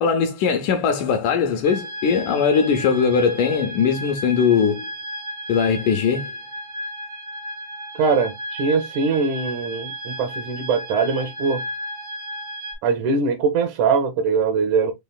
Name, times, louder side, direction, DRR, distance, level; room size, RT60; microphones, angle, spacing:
voice 1, 0.0-4.9 5.5-6.3, left 6 dB, 80° left, 1.9 m, -20 dB
sound 1, 1.6-12.7, equal, 40° right, 0.7 m, -34 dB
voice 2, 8.0-11.6 12.8-14.9, right 5 dB, 75° right, 1.8 m, -22 dB
5.6 x 2.9 x 2.2 m
omnidirectional pair, 4.0 m